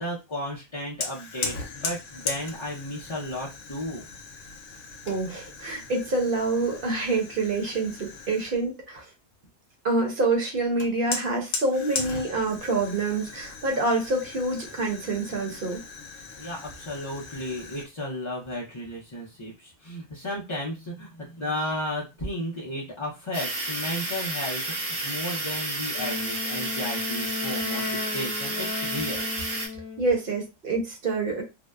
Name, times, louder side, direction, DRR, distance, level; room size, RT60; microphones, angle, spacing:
voice 1, 0.0-4.0 16.4-29.3, left 1 dB, 35° left, -6 dB, 0.5 m, -34 dB
Fire, 1.0-8.7 10.8-17.9, left 4 dB, 85° left, 1.0 m, -38 dB
voice 2, 5.1-9.0 9.8-15.8 30.0-31.4, right 3 dB, 50° right, 1 dB, 0.9 m, -27 dB
sound 1, 23.3-29.7, right 2 dB, 75° right, 1.1 m, -31 dB
Wind instrument woodwind instrument, 25.9-30.1, left 5 dB, 60° left, 0.9 m, -35 dB
2.7 x 2.1 x 2.3 m, 0.25 s
omnidirectional pair, 1.3 m